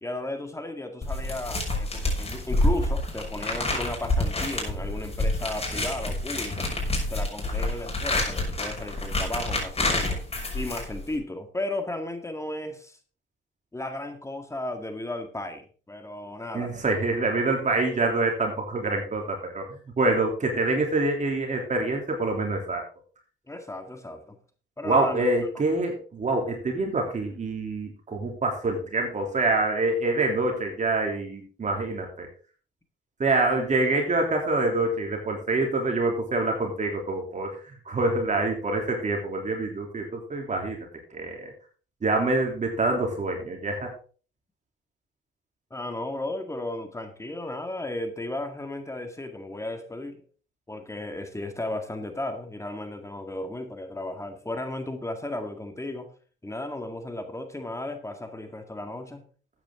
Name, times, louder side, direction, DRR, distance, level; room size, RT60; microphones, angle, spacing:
voice 1, 0.0-6.7 7.1-10.2 10.5-13.0 13.7-16.7 23.5-24.4 24.8-25.3 45.7-50.2 50.7-56.1 56.4-59.2, left 1 dB, 15° left, 6 dB, 1.9 m, -34 dB
sound 1, 1.0-11.2, left 2 dB, 30° left, 6.1 m, -28 dB
voice 2, 16.5-19.6 20.0-22.8 24.8-32.3 33.2-37.5 37.9-40.8 41.1-41.5 42.0-43.9, right 2 dB, 35° right, 2 dB, 3.3 m, -26 dB
13.5 x 9.1 x 3.8 m, 0.39 s
cardioid pair, 90°, 20 cm